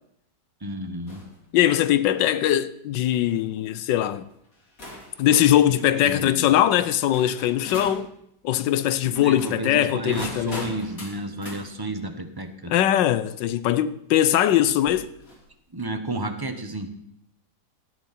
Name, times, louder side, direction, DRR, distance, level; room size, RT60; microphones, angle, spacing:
voice 1, 0.6-1.3 5.2-5.3 5.7-6.5 9.0-12.7 15.7-16.9, right 1 dB, 15° right, 1.0 m, -32 dB
sound 1, 1.1-1.4 1.9-2.2 3.0-3.3 4.2-4.3 4.8-8.0 9.0-11.6 13.4-13.5 14.8-15.5, left 2 dB, 50° left, 3.2 m, -40 dB
voice 2, 1.5-4.3 5.2-8.1 8.4-10.7 12.7-15.1, left 11 dB, 90° left, 1.4 m, -21 dB
18.0 x 13.0 x 4.3 m
omnidirectional pair, 1.9 m